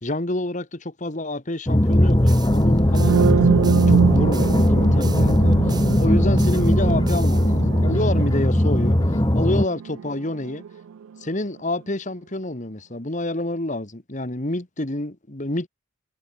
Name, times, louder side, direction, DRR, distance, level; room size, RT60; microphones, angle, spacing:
voice 1, 0.0-10.6 11.2-15.7, left 1 dB, 35° left, 1.8 m, -28 dB
sound 1, 1.7-9.7, left 1 dB, 20° left, 1.1 m, -19 dB
sound 2, 1.9-8.0, right 1 dB, 20° right, 2.2 m, -32 dB
sound 3, 2.8-10.7, right 6 dB, 80° right, 0.4 m, -24 dB
head